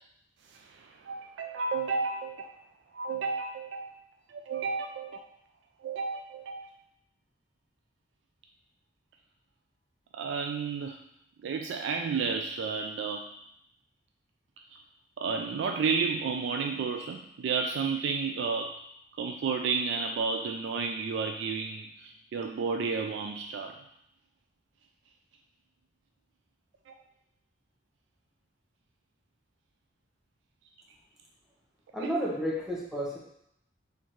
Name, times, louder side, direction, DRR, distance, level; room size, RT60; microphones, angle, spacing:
voice 1, 0.5-2.4 2.9-3.9 4.3-5.2 5.8-6.7 10.1-11.0 11.4-13.2 14.7-14.8 15.2-18.7 19.2-23.7 26.9-27.0 32.0-32.1, right 5 dB, 80° right, 4 dB, 0.3 m, -32 dB
voice 2, 31.9-33.2, equal, 5° right, -5 dB, 0.9 m, -31 dB
4.4 x 3.5 x 3.1 m, 0.75 s
head